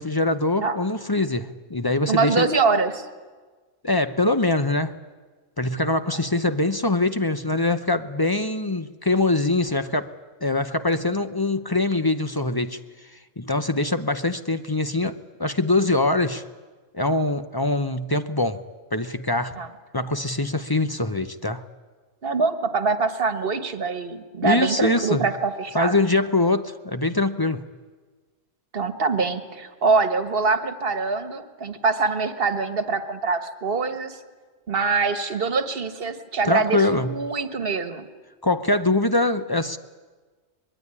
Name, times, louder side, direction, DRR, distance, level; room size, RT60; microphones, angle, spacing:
voice 1, 0.0-2.5 3.8-5.0 5.6-10.1 10.4-12.8 13.4-16.4 16.9-18.6 18.9-19.6 19.9-21.6 24.4-25.3 25.7-27.6 36.4-37.2 38.4-39.8, left 2 dB, 20° left, 10 dB, 0.7 m, -23 dB
voice 2, 2.1-3.1 6.1-6.2 19.5-19.7 22.2-26.0 28.7-34.2 34.7-38.1, right 4 dB, 50° right, 9 dB, 1.6 m, -24 dB
23.5 x 22.0 x 9.8 m, 1.4 s
omnidirectional pair, 1.3 m